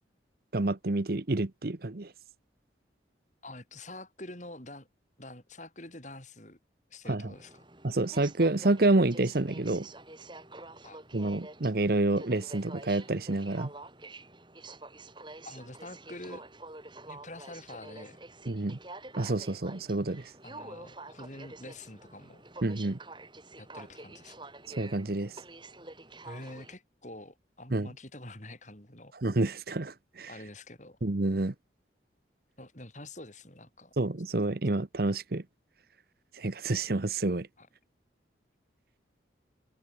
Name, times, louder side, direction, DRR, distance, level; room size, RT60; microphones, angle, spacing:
voice 1, 0.5-2.1 7.1-7.3 7.8-9.9 11.1-13.7 18.5-18.8 19.2-20.3 22.6-23.0 24.7-25.3 27.7-27.9 29.2-30.3 31.0-31.5 34.0-35.4 36.3-37.5, right 2 dB, 55° right, 0.9 m, -28 dB
voice 2, 3.4-4.9 5.2-6.6 6.9-7.6 10.8-11.0 15.4-16.4 17.0-18.2 20.4-22.4 23.5-24.4 26.2-29.1 30.3-31.0 32.6-33.9 37.6-37.7, left 2 dB, 40° left, 6.7 m, -46 dB
Aircraft, 7.3-26.8, right 2 dB, 25° right, 6.3 m, -48 dB
open air
head